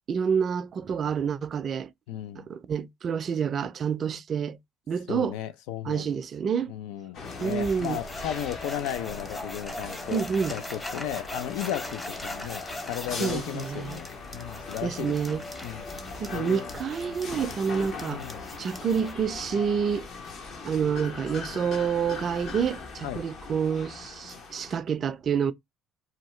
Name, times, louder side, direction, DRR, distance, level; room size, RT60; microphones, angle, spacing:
voice 1, 0.1-1.9 2.4-4.6 4.9-5.4 5.8-6.7 7.4-8.0 10.1-10.5 13.2-14.0 14.8-15.4 16.2-18.2 18.6-20.1 20.6-25.5, right 7 dB, 45° right, 0.4 m, -28 dB
voice 2, 2.1-2.5 5.1-6.1 6.7-10.2 10.5-16.7 18.1-18.4 23.0-23.2, left 11 dB, 85° left, 0.4 m, -35 dB
sound 1, 7.1-24.8, left 4 dB, 60° left, 0.9 m, -40 dB
sound 2, 7.3-19.1, left 1 dB, 20° left, 0.7 m, -40 dB
2.7 x 2.3 x 3.0 m
supercardioid pair, 90°, 0 cm